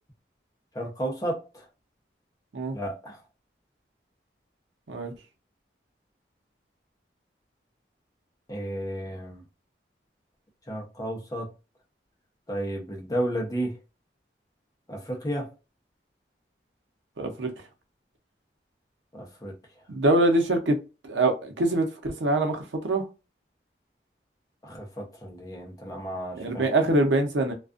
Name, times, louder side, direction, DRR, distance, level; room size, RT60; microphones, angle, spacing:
voice 1, 0.7-1.7 2.7-3.2 8.5-9.4 10.7-11.5 12.5-13.7 14.9-15.5 19.1-19.5 24.6-26.7, right 1 dB, 20° left, 0.7 m, -32 dB
voice 2, 17.2-17.5 19.9-20.8 21.1-23.1 26.4-27.5, right 2 dB, 90° right, 0.7 m, -24 dB
2.4 x 2.3 x 2.4 m
head